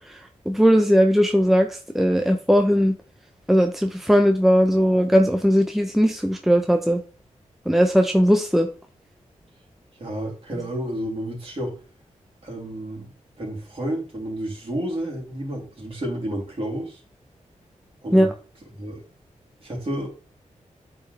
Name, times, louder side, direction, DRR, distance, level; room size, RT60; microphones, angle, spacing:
voice 1, 0.5-2.9 3.5-7.0 7.7-8.7 18.1-18.3, equal, ahead, 5 dB, 0.7 m, -18 dB
voice 2, 10.0-11.7 12.4-13.1 13.4-17.0 18.0-18.3 18.7-19.0 19.6-20.1, right 1 dB, 45° right, -3 dB, 3.1 m, -30 dB
8.6 x 4.5 x 3.3 m, 0.37 s
cardioid pair, 70°, 13 cm